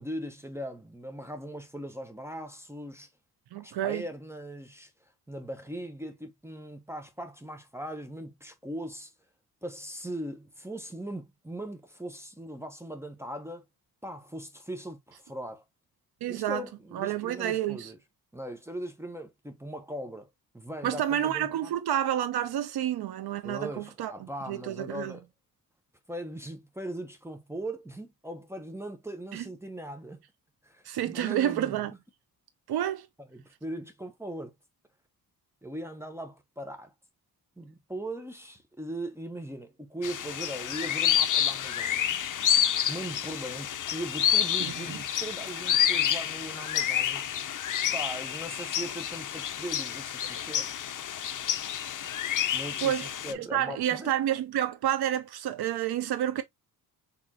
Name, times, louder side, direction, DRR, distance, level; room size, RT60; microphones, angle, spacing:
voice 1, 0.0-3.1 3.6-4.9 5.3-9.1 9.6-13.6 14.0-15.6 16.3-18.0 18.3-20.3 20.5-21.7 23.4-25.3 26.1-30.2 30.6-32.0 33.3-34.5 35.6-36.9 37.6-42.1 42.9-47.3 47.9-50.7 52.5-54.1, right 1 dB, 5° right, 0.8 m, -39 dB
voice 2, 3.5-4.0 16.2-16.6 16.9-17.9 20.8-24.1 24.5-25.1 29.3-29.4 30.8-31.9 32.7-33.1 44.6-45.0 52.8-56.4, right 11 dB, 85° right, 0.6 m, -29 dB
sound 1, 40.0-53.3, left 9 dB, 55° left, 0.7 m, -29 dB
4.3 x 3.5 x 2.8 m
cardioid pair, 115°, 38 cm